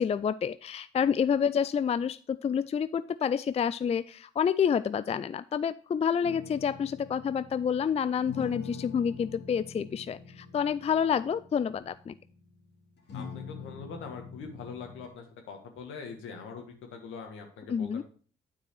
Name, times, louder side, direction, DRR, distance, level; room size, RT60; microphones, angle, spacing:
voice 1, 0.0-12.1 17.7-18.0, left 7 dB, 30° left, 15 dB, 0.4 m, -28 dB
sound 1, 6.2-12.7 13.1-15.1, left 5 dB, 60° left, 2.1 m, -45 dB
voice 2, 13.1-18.0, left 5 dB, 75° left, 4 dB, 1.6 m, -43 dB
9.0 x 4.7 x 4.5 m, 0.42 s
hypercardioid pair, 45°, 20 cm